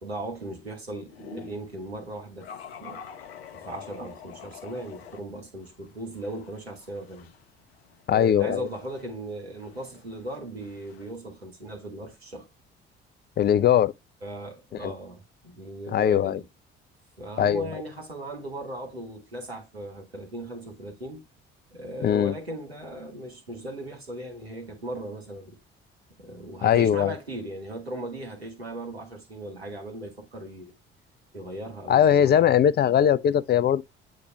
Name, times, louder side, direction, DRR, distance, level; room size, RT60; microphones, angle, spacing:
voice 1, 0.0-2.5 2.8-3.1 3.5-7.3 8.1-12.5 14.2-16.4 17.2-21.2 21.7-25.6 26.2-30.7 31.3-32.5, right 1 dB, 90° right, 1.3 m, -38 dB
sound 1, 1.1-1.7 2.4-5.2 5.6-11.1, left 7 dB, 80° left, 0.6 m, -46 dB
voice 2, 8.1-8.7 13.4-13.9 14.8-14.9 15.9-16.4 17.4-17.7 22.0-22.3 26.6-27.1 31.9-33.8, left 9 dB, 35° left, 0.5 m, -20 dB
8.5 x 2.9 x 4.4 m
figure-of-eight pair, 45°, 30 cm